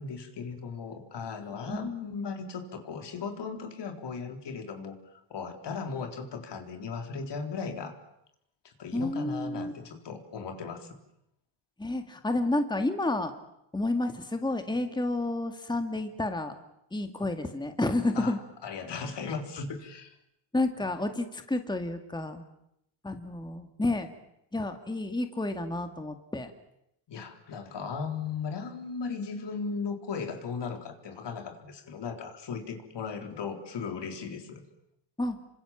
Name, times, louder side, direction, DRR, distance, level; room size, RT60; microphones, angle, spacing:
voice 1, 0.0-8.0 8.6-11.0 18.1-20.2 27.1-34.6, left 5 dB, 55° left, 5 dB, 4.0 m, -37 dB
voice 2, 8.9-9.7 11.8-13.3 13.7-16.6 16.9-18.4 20.5-22.5 23.0-24.1 24.5-26.5 35.2-35.4, left 2 dB, 10° left, 7 dB, 2.2 m, -30 dB
28.0 x 25.0 x 7.4 m, 0.79 s
cardioid pair, 100°, 49 cm